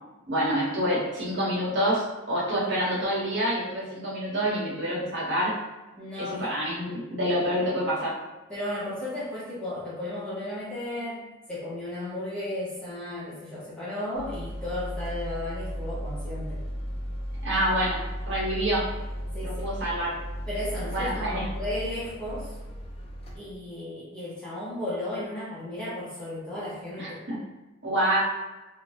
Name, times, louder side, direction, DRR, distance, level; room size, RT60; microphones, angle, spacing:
voice 1, 0.3-5.5 6.2-8.1 17.4-18.9 19.4-20.2 20.9-21.5 27.0-27.4 27.8-28.2, equal, 60° right, -6 dB, 1.0 m, -27 dB
voice 2, 6.0-6.4 6.6-6.8 8.5-16.6 19.3-19.6 20.5-22.6 23.3-27.2, left 1 dB, 5° left, -10 dB, 0.8 m, -34 dB
sound 1, 14.1-23.4, equal, 25° left, 0.4 m, -35 dB
2.7 x 2.2 x 3.2 m, 1.1 s
head